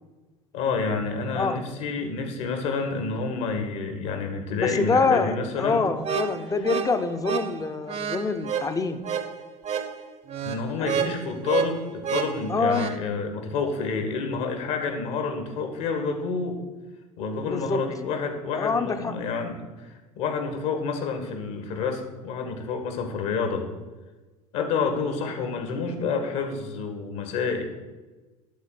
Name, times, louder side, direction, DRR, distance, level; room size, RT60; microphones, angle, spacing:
voice 1, 0.5-5.8 10.4-16.6 17.2-23.7 24.5-27.6, left 4 dB, 60° left, 5 dB, 1.9 m, -29 dB
voice 2, 4.6-9.0 10.8-11.1 12.5-12.9 17.4-17.8 18.5-19.1, left 4 dB, 20° left, 9 dB, 0.8 m, -26 dB
sound 1, 6.0-13.0, right 7 dB, 35° right, 0.9 m, -30 dB
11.5 x 4.1 x 7.7 m, 1.2 s
figure-of-eight pair, 70°, 19 cm